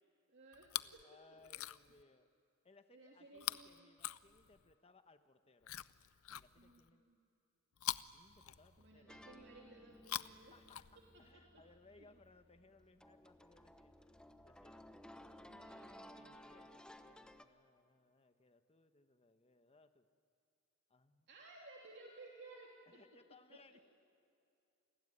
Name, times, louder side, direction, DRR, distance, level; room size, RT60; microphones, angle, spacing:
voice 1, 0.3-1.6 2.9-3.9 6.6-7.2 8.8-10.5 11.1-11.4 12.0-12.1 15.5-16.4 21.3-23.0 23.5-23.9, right 2 dB, 55° right, -1 dB, 2.9 m, -59 dB
Chewing mastication, 0.5-1.0 1.4-2.0 3.4-4.7 5.6-6.9 7.8-9.0 9.9-11.3 12.2-12.3, left 13 dB, 70° left, 0.6 m, -45 dB
voice 2, 1.0-2.3 2.6-5.8 6.3-7.1 8.1-9.2 10.3-10.8 11.2-13.9 14.4-14.8 15.3-20.1 20.9-21.3 22.9-23.9, left 3 dB, 30° left, 9 dB, 1.1 m, -66 dB
sound 1, 8.3-15.9, right 1 dB, 50° left, 5.7 m, -73 dB
sound 2, 9.1-17.4, left 1 dB, 5° left, 0.9 m, -58 dB
28.5 x 20.0 x 9.9 m, 2.5 s
head